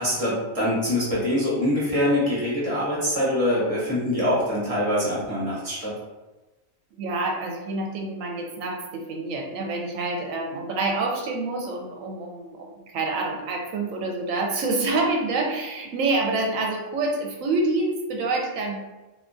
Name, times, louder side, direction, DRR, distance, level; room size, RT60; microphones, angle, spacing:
voice 1, 0.0-5.9, left 1 dB, 30° right, -7 dB, 0.8 m, -24 dB
voice 2, 6.9-18.8, right 3 dB, 75° right, 1 dB, 1.0 m, -27 dB
2.8 x 2.3 x 2.5 m, 1.1 s
omnidirectional pair, 1.4 m